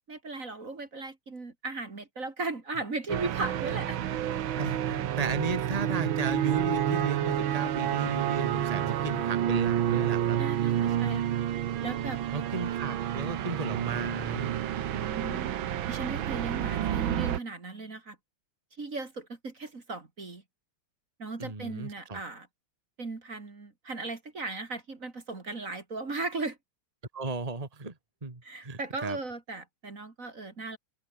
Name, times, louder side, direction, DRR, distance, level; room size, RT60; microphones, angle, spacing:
voice 1, 0.1-4.0 9.0-9.3 10.4-11.4 11.8-12.2 14.9-15.6 15.9-18.2 18.8-20.4 21.2-22.5 23.0-26.6 28.4-30.8, right 3 dB, 40° right, 2.9 m, -37 dB
sound 1, 3.1-17.4, right 11 dB, 70° right, 1.9 m, -29 dB
voice 2, 4.6-10.7 12.3-14.5 21.4-22.2 27.1-27.9 28.2-29.2, right 3 dB, 15° right, 2.3 m, -35 dB
open air
omnidirectional pair, 2.3 m